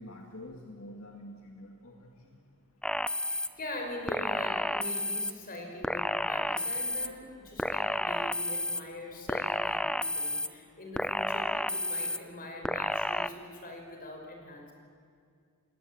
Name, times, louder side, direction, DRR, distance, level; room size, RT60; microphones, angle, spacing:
voice 1, 0.0-2.4, left 1 dB, 75° left, 2 dB, 2.3 m, -47 dB
sound 1, 2.8-3.5 4.1-5.3 5.8-7.1 7.6-8.8 9.3-10.5 11.0-12.2 12.6-13.3, left 1 dB, 5° left, 0.6 m, -31 dB
voice 2, 3.3-14.7, left 1 dB, 40° left, 2 dB, 5.5 m, -43 dB
29.0 x 20.5 x 9.0 m, 2.3 s
head